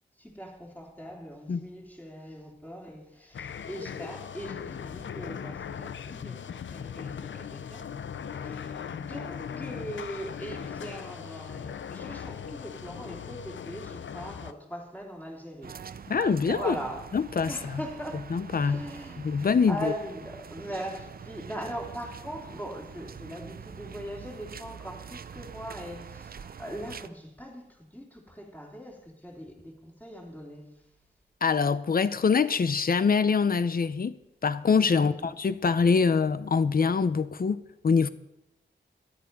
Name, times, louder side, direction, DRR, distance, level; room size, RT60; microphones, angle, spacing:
voice 1, 0.2-7.9 8.3-16.1 16.5-17.1 17.5-18.2 18.6-19.2 19.7-30.8 34.9-35.3, equal, 10° left, 3.2 m, -41 dB
sound 1, 3.3-14.5, left 7 dB, 85° left, 0.6 m, -39 dB
sound 2, 15.6-27.1, right 6 dB, 50° right, 0.5 m, -43 dB
voice 2, 16.1-16.7 17.1-17.8 18.3-18.8 19.2-19.8 31.4-34.1 34.4-38.1, left 5 dB, 50° left, 0.8 m, -24 dB
13.0 x 11.5 x 5.4 m
wide cardioid pair, 110°, 19 cm